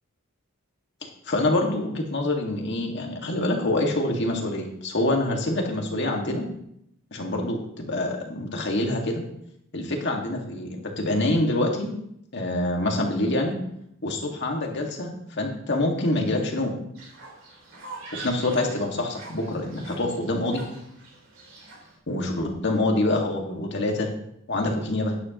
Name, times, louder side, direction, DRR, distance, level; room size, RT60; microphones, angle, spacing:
voice 1, 1.3-6.5 7.1-9.2 9.7-11.9 12.3-13.5 14.0-16.7 18.2-20.6 22.1-24.1 24.5-25.2, left 1 dB, 60° left, 1 dB, 2.0 m, -26 dB
Fowl, 16.9-21.9, right 3 dB, 65° right, 4.0 m, -44 dB
12.0 x 10.0 x 3.0 m, 0.74 s
head